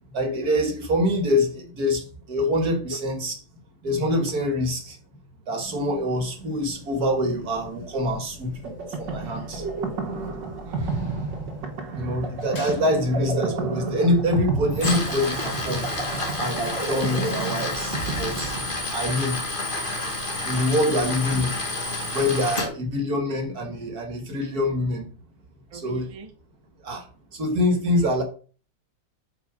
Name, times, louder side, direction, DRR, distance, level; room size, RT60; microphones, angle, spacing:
voice 1, 0.1-3.3 3.8-5.0 5.5-9.6 12.0-15.9 16.4-18.5 18.9-19.4 20.4-21.5 22.1-25.1 25.7-26.1 26.8-27.0 27.3-28.2, left 1 dB, 50° right, 2.2 m, -25 dB
sound 1, 5.6-18.5, left 2 dB, 70° left, 2.5 m, -44 dB
sound 2, 8.6-19.2, right 4 dB, 65° right, 2.1 m, -31 dB
voice 2, 10.6-11.1 25.7-26.3, right 3 dB, 35° right, 0.5 m, -41 dB
Tools, 14.7-22.7, left 2 dB, 25° left, 2.1 m, -29 dB
8.0 x 5.4 x 5.0 m
omnidirectional pair, 2.1 m